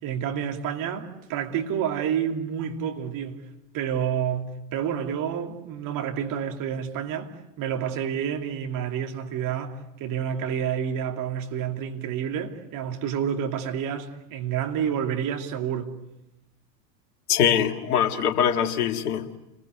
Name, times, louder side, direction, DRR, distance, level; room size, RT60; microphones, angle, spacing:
voice 1, 0.0-3.4 3.7-15.9, right 8 dB, 40° right, 2.8 m, -29 dB
voice 2, 17.3-19.4, left 8 dB, 60° left, 2.1 m, -23 dB
29.5 x 21.0 x 8.0 m
figure-of-eight pair, 80°, 50 cm